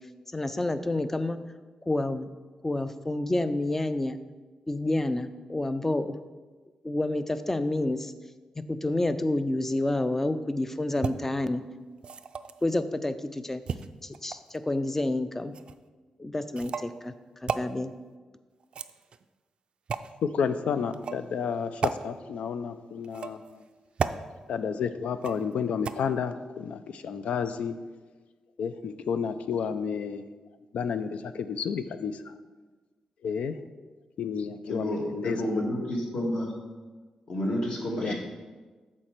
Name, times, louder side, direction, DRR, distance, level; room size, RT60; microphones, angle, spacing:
voice 1, 0.3-1.4 1.9-2.3 2.6-4.2 4.7-6.1 6.8-8.1 8.7-11.6 12.6-13.6 14.0-15.5 16.2-17.1 17.4-17.9, left 2 dB, 15° left, 12 dB, 0.4 m, -29 dB
sound 1, 11.0-11.1 12.0-12.6 13.7-14.6 15.5-15.7 16.5-16.9 17.5-17.7 18.6-19.2 19.9-20.1 20.9-21.2 21.8-22.0 23.0-23.5 24.0-24.2 25.2-25.5 25.8-25.9, right 6 dB, 55° right, 0.3 m, -33 dB
voice 2, 20.2-23.4 24.5-27.8 28.6-30.2 30.7-32.1 33.2-33.5 34.2-35.0 35.2-35.4 38.0-38.1, left 6 dB, 80° left, 11 dB, 0.4 m, -30 dB
voice 3, 34.6-36.5 37.3-38.1, equal, 55° left, -1 dB, 1.9 m, -30 dB
7.3 x 4.4 x 6.5 m, 1.3 s
cardioid pair, 100°, 2 cm